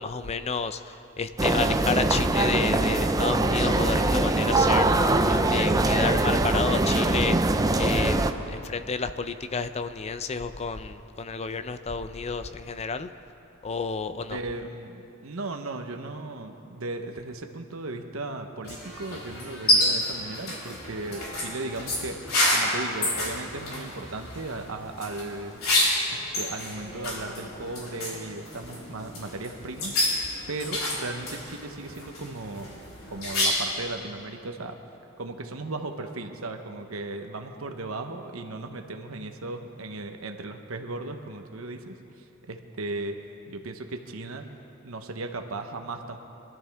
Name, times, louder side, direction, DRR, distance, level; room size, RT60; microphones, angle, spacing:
voice 1, 0.0-7.4 7.8-13.1 13.6-14.4, left 4 dB, 30° left, 10 dB, 0.5 m, -30 dB
sound 1, 1.4-8.3, right 2 dB, 15° right, 0.5 m, -23 dB
voice 2, 14.3-22.2 22.5-25.6 26.1-30.2 30.5-32.7 33.1-34.8 35.2-43.2 43.5-44.5 44.8-46.2, right 2 dB, 90° right, 5 dB, 1.0 m, -36 dB
sound 2, 18.6-33.8, left 1 dB, 85° left, 4.4 m, -29 dB
24.5 x 12.0 x 3.5 m, 2.8 s
head